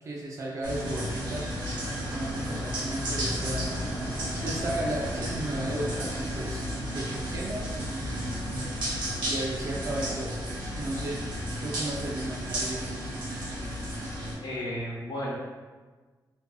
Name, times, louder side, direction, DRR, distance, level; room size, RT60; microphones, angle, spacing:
voice 1, 0.0-1.4 2.0-3.7 4.1-8.2 9.3-10.4 10.8-11.2 11.6-12.9, right 1 dB, 40° right, -2 dB, 0.3 m, -35 dB
sound 1, 0.6-14.3, equal, 75° right, 0.8 m, -33 dB
sound 2, 1.8-14.4, equal, 25° left, 0.6 m, -42 dB
voice 2, 14.4-15.3, equal, 75° left, -7 dB, 0.9 m, -33 dB
2.6 x 2.5 x 2.2 m, 1.4 s
wide cardioid pair, 160°, 8 cm